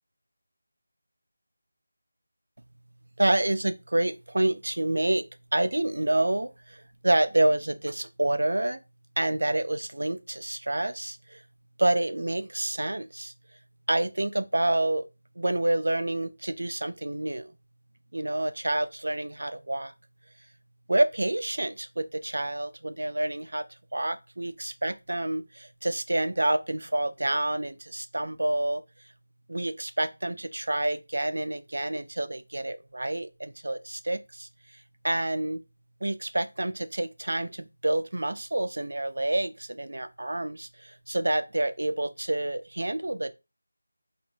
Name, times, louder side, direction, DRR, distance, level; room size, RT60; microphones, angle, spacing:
voice 1, 3.2-8.8 9.2-11.4 11.8-13.3 13.9-15.1 15.4-17.5 18.1-19.9 20.9-23.6 23.9-28.8 29.5-34.5 35.0-35.6 36.0-43.3, right 1 dB, 85° right, 0.4 m, -28 dB
3.3 x 2.5 x 2.6 m
figure-of-eight pair, 180°, 0 cm